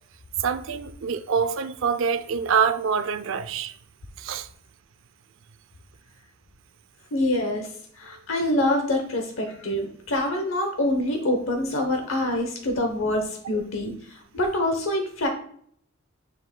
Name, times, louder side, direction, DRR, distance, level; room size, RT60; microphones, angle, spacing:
voice 1, 0.4-3.7 4.2-4.5, right 6 dB, 70° right, 0.5 m, -25 dB
voice 2, 7.1-15.3, left 1 dB, 70° left, 0.9 m, -26 dB
7.2 x 6.3 x 2.2 m
head